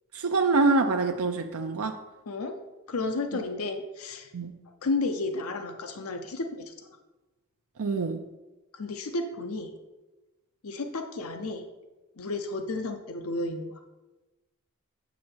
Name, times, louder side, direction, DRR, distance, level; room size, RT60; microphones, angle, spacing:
voice 1, 0.1-1.9 4.3-4.6 7.8-8.2, right 3 dB, 85° right, 4 dB, 0.6 m, -25 dB
voice 2, 2.9-4.3 4.8-7.0 8.7-9.7 10.6-11.6 12.2-13.8, left 3 dB, 80° left, 6 dB, 0.7 m, -32 dB
7.4 x 7.1 x 4.4 m, 1.1 s
head